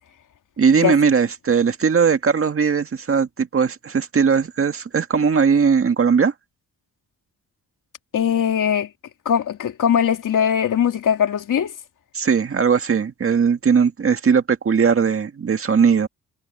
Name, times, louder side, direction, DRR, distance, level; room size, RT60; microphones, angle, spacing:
voice 1, 0.6-6.3 12.1-16.1, right 6 dB, 40° right, 1.9 m, -19 dB
voice 2, 8.1-8.9 9.2-11.7, left 8 dB, 70° left, 2.6 m, -20 dB
cardioid pair, 115°, 32 cm